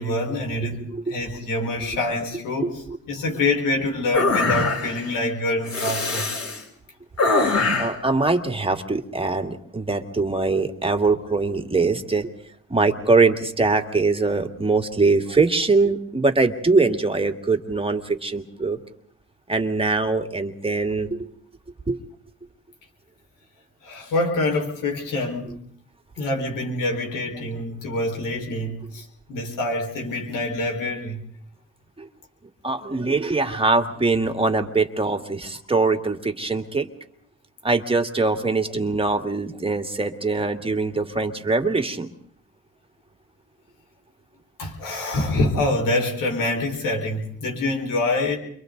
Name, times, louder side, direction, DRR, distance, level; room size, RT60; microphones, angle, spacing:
voice 1, 0.0-6.3 23.8-25.6 26.2-31.2 44.6-48.4, left 2 dB, 90° left, 2 dB, 4.9 m, -26 dB
sound 1, 4.1-5.1 5.7-6.6 7.2-8.0, left 3 dB, 60° left, 6.4 m, -22 dB
voice 2, 7.8-12.3 12.7-18.8 19.5-21.2 21.9-22.0 32.0-32.1 32.6-36.9 37.6-42.1, right 3 dB, 15° right, 5 dB, 2.2 m, -22 dB
29.5 x 24.5 x 4.0 m, 0.66 s
cardioid pair, 70°, 32 cm